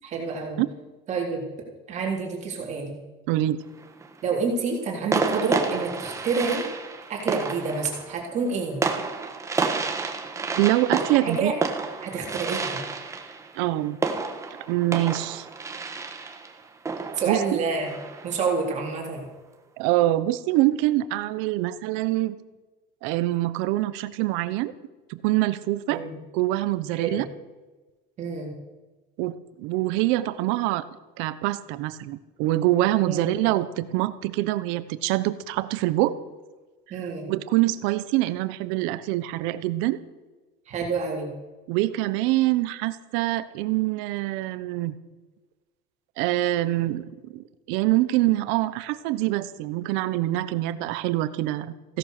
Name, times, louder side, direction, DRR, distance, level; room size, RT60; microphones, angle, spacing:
voice 1, 0.0-0.6 1.1-1.4 1.9-3.0 4.2-6.7 7.1-8.8 11.1-11.5 12.0-12.8 17.2-19.3 25.9-26.2 26.9-27.2 28.2-28.5 33.0-33.3 36.9-37.3 40.7-41.3, right 4 dB, 35° right, -1 dB, 3.8 m, -28 dB
voice 2, 3.3-3.6 10.6-11.5 13.6-14.0 14.7-15.5 17.3-17.4 19.8-22.3 23.0-24.7 25.1-26.0 26.3-27.3 29.2-30.9 31.2-36.1 37.3-40.0 41.7-44.9 46.2-47.0 47.3-52.0, right 16 dB, 80° right, 14 dB, 1.0 m, -25 dB
sound 1, 3.6-4.2 5.1-18.5, right 4 dB, 15° right, 1.5 m, -30 dB
16.5 x 11.0 x 6.7 m, 1.2 s
cardioid pair, 160°, 20 cm